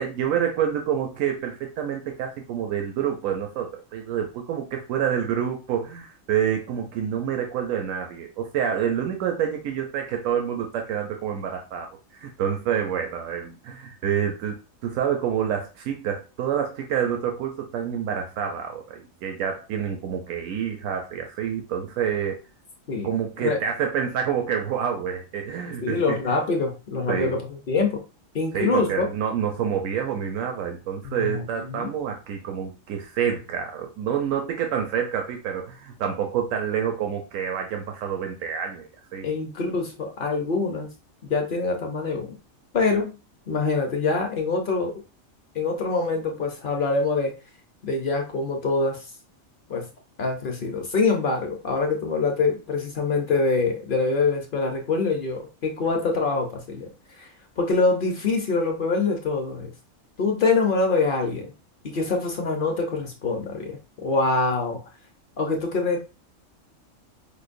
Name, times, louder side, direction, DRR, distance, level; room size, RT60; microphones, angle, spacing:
voice 1, 0.0-22.4 23.0-26.3 27.1-27.4 28.5-39.3, right 8 dB, 90° right, 3 dB, 1.0 m, -28 dB
voice 2, 25.8-28.0 28.3-29.1 31.0-31.9 39.2-40.9 41.2-42.3 42.7-43.2 43.5-44.9 45.5-47.4 47.8-49.1 49.7-49.9 50.2-56.9 57.2-57.3 57.6-59.7 60.2-61.5 61.8-64.8 65.4-66.0, left 3 dB, 50° left, 2 dB, 0.7 m, -25 dB
5.0 x 2.1 x 2.5 m, 0.31 s
omnidirectional pair, 1.4 m